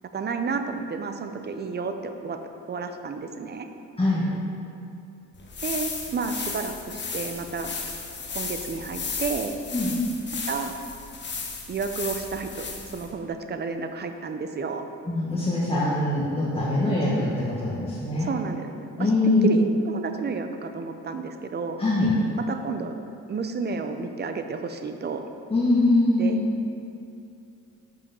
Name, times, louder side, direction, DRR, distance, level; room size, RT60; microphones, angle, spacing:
voice 1, 0.1-2.4 2.7-3.7 5.6-7.8 8.3-9.5 10.5-10.7 11.7-14.9 18.2-18.7 19.0-19.1 19.4-21.8 22.5-22.9 23.3-25.2 26.2-26.4, right 4 dB, 35° right, 7 dB, 0.5 m, -31 dB
sound 1, 5.3-13.1, left 4 dB, 35° left, 1.0 m, -34 dB
voice 2, 15.1-17.3 17.6-18.3 19.0-19.5 21.8-22.1 25.5-26.5, left 2 dB, 20° left, -8 dB, 1.4 m, -22 dB
5.6 x 5.2 x 5.4 m, 2.5 s
cardioid pair, 90°, 30 cm